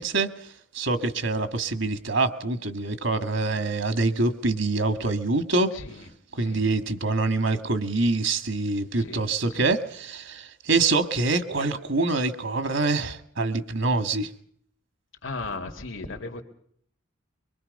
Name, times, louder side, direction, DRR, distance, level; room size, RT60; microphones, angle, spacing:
voice 1, 0.0-5.8 6.3-14.3, right 3 dB, 70° right, 9 dB, 1.7 m, -25 dB
voice 2, 15.2-16.4, left 3 dB, 80° left, 2 dB, 2.1 m, -36 dB
24.0 x 24.0 x 5.4 m, 0.63 s
head